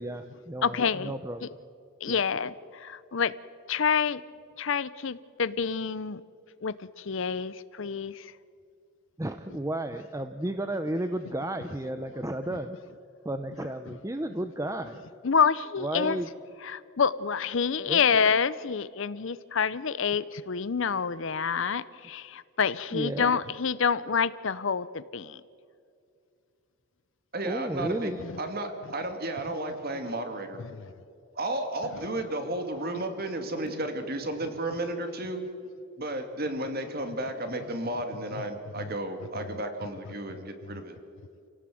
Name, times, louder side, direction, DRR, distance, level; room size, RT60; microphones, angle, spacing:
voice 1, 0.0-1.5 2.1-2.2 9.2-12.8 13.2-15.0 15.8-16.3 17.9-18.0 22.9-23.4 27.4-28.3, right 1 dB, 15° right, 8 dB, 0.6 m, -33 dB
voice 2, 0.6-1.1 2.0-3.3 3.7-4.2 4.6-6.2 6.6-8.3 15.2-16.2 16.6-25.4 28.2-28.4 30.7-30.8, left 6 dB, 55° left, 17 dB, 0.6 m, -27 dB
voice 3, 27.3-28.1 28.4-30.6 31.4-35.4 36.0-41.0, right 1 dB, 45° right, 6 dB, 2.4 m, -33 dB
28.0 x 17.5 x 7.7 m, 2.5 s
head